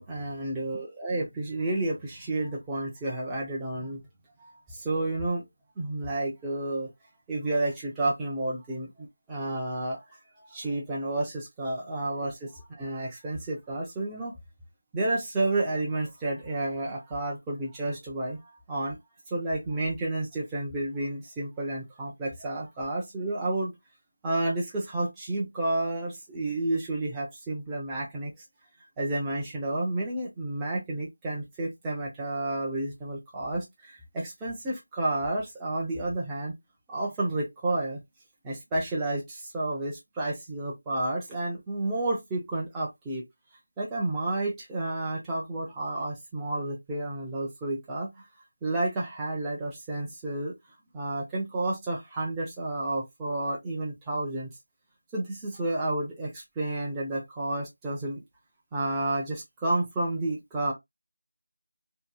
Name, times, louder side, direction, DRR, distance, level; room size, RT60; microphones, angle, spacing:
voice 1, 0.0-4.0 4.4-5.4 5.8-6.9 7.3-10.0 10.5-14.3 14.9-18.4 18.7-19.0 19.3-23.7 24.2-28.3 29.0-36.5 36.9-38.0 38.4-43.2 43.8-48.3 48.6-50.5 50.9-54.5 55.1-58.2 58.7-60.7, right 2 dB, 5° right, 0.4 m, -31 dB
2.6 x 2.3 x 2.2 m
figure-of-eight pair, 175°, 0 cm